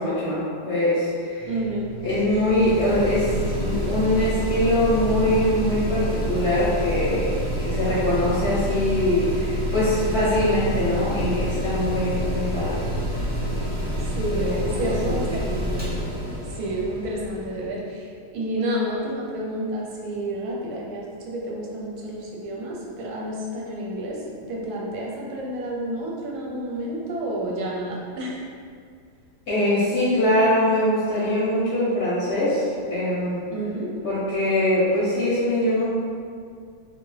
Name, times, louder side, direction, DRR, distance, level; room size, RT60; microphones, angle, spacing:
voice 1, 0.0-1.5 2.0-7.3 7.6-12.8 14.3-15.2 29.5-33.4 34.0-35.8, left 1 dB, 60° left, -9 dB, 0.8 m, -23 dB
Mechanical fan, 1.4-17.7, equal, 10° right, 0.5 m, -28 dB
voice 2, 1.4-1.9 14.0-15.9 16.5-24.2 24.5-28.4 33.5-33.9, right 1 dB, 75° right, -3 dB, 1.1 m, -30 dB
2.7 x 2.6 x 3.1 m, 2.2 s
omnidirectional pair, 1.7 m